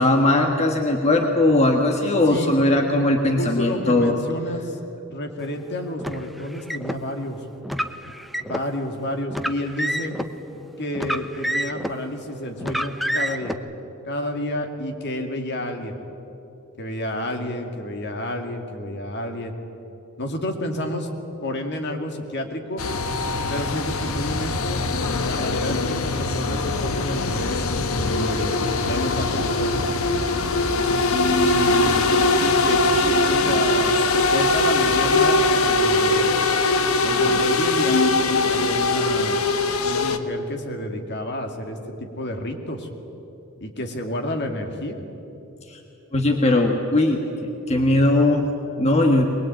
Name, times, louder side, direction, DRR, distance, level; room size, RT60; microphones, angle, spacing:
voice 1, 0.0-4.2 45.7-45.8 46.1-49.2, left 2 dB, 30° left, 1 dB, 1.6 m, -19 dB
voice 2, 3.4-4.8 5.1-7.4 8.4-10.1 10.8-13.6 14.0-16.0 16.8-19.5 20.2-21.1 21.4-22.8 23.5-24.9 25.2-27.6 28.0-29.9 31.1-32.0 32.4-36.3 37.0-38.1 38.4-39.4 39.8-42.9 43.6-45.0, left 1 dB, 55° left, 4 dB, 2.4 m, -30 dB
Car, 6.0-7.0 7.6-8.7 9.3-10.3 10.9-12.0 12.6-13.5, equal, ahead, 0.8 m, -28 dB
sound 1, 22.8-40.2, left 2 dB, 70° left, 1.3 m, -21 dB
22.0 x 21.0 x 9.1 m, 3.0 s
head